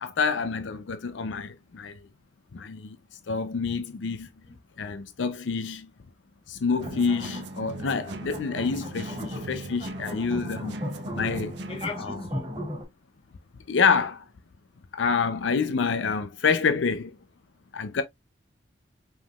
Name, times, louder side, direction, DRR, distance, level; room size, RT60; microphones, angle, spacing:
voice 1, 0.0-2.0 2.5-3.0 3.3-4.3 4.8-5.9 6.5-10.8 11.2-11.6 12.0-12.2 13.7-14.2 14.9-17.1 17.7-18.0, left 5 dB, 75° left, 0.5 m, -27 dB
sound 1, 6.7-12.8, equal, 25° right, 1.9 m, -37 dB
sound 2, 6.8-12.0, right 2 dB, 60° right, 0.7 m, -39 dB
voice 2, 11.7-12.5, left 4 dB, 30° left, 1.0 m, -37 dB
5.1 x 3.6 x 2.3 m
head